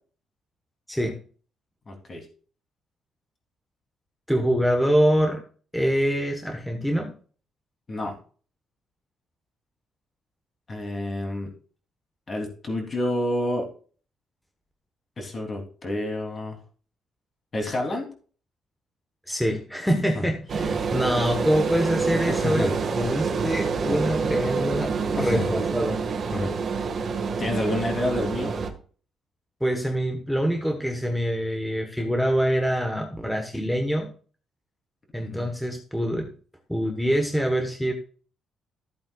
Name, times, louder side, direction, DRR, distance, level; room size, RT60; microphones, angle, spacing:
voice 1, 1.9-2.2 7.9-8.2 10.7-11.5 12.3-13.7 15.2-16.6 17.5-18.1 20.2-20.3 22.3-22.7 25.2-25.6 26.3-26.5 27.3-28.6 35.2-35.5, left 1 dB, 25° left, 1 dB, 3.0 m, -29 dB
voice 2, 4.3-5.4 5.7-7.1 19.3-26.0 29.6-34.1 35.1-36.3 36.7-37.9, equal, ahead, 3 dB, 1.2 m, -25 dB
sound 1, 20.5-28.7, right 5 dB, 40° right, 1.6 m, -27 dB
14.5 x 8.5 x 2.4 m, 0.41 s
cardioid pair, 155°, 0 cm